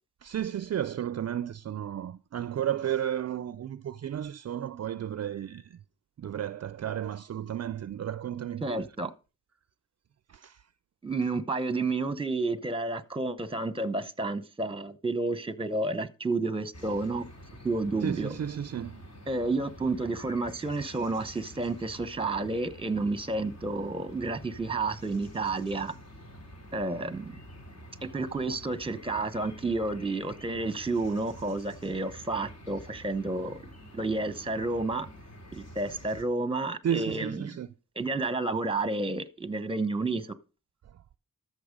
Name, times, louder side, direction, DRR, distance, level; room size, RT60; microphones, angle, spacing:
voice 1, 0.2-5.8 6.2-8.9 10.3-10.6 18.0-19.0 36.8-37.7 40.8-41.0, right 10 dB, 50° right, 0.4 m, -33 dB
voice 2, 8.6-9.1 11.0-17.2 17.6-18.3 19.3-25.9 26.7-27.4 28.0-33.6 33.9-35.1 35.6-37.5 38.0-40.3, right 3 dB, 15° right, 0.9 m, -30 dB
sound 1, 16.7-36.2, equal, 50° left, 3.0 m, -48 dB
13.5 x 6.7 x 5.2 m
wide cardioid pair, 110°, 33 cm